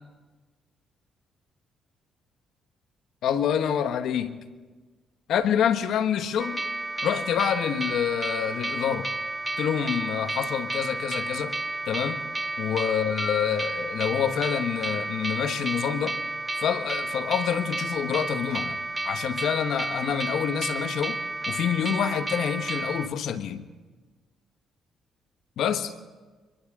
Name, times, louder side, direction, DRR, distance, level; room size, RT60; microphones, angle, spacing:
voice 1, 3.2-4.4 5.3-6.7 7.0-9.1 9.6-11.6 11.9-12.2 12.6-16.2 16.6-18.8 19.0-21.2 21.5-23.7 25.6-25.9, left 8 dB, 75° left, 1.3 m, -27 dB
sound 1, 6.4-23.1, right 2 dB, 15° right, 0.8 m, -32 dB
29.5 x 26.0 x 3.8 m
cardioid pair, 90°, 0 cm